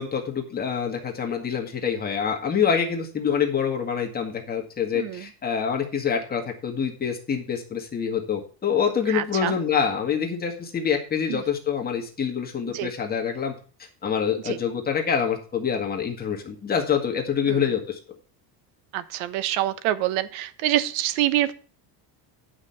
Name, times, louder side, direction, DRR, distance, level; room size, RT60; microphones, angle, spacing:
voice 1, 0.0-13.5 13.8-18.0, left 7 dB, 20° left, 2 dB, 1.9 m, -26 dB
voice 2, 4.9-5.3 9.1-9.6 11.3-11.4 12.7-12.9 14.4-14.6 17.4-17.6 18.9-21.5, right 13 dB, 90° right, 15 dB, 1.1 m, -26 dB
10.0 x 5.8 x 5.7 m, 0.39 s
cardioid pair, 175°, 47 cm